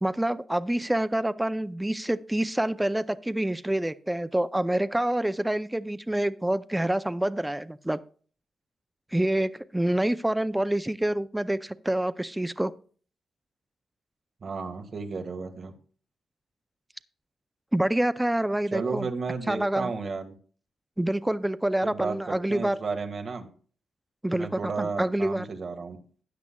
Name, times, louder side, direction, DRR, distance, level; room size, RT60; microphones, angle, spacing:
voice 1, 0.0-8.0 9.1-12.7 17.7-19.1 19.5-19.9 21.0-22.8 24.2-25.5, right 1 dB, 10° right, 14 dB, 0.4 m, -27 dB
voice 2, 14.4-15.7 18.7-20.3 21.9-23.5 24.3-26.0, right 4 dB, 45° right, 5 dB, 1.6 m, -33 dB
13.5 x 9.6 x 2.2 m, 0.43 s
cardioid pair, 110°, 0 cm